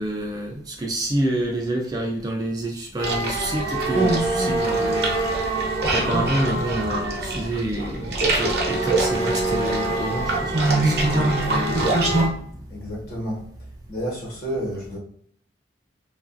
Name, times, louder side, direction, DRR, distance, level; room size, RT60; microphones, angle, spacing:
voice 1, 0.0-5.1 5.9-12.0 12.3-12.5, right 1 dB, 20° right, 0 dB, 0.3 m, -28 dB
sound 1, 3.0-12.3, right 2 dB, 60° right, 0.7 m, -23 dB
voice 2, 12.7-13.4 13.9-15.0, equal, 50° left, -3 dB, 1.1 m, -30 dB
2.9 x 2.4 x 2.4 m, 0.64 s
head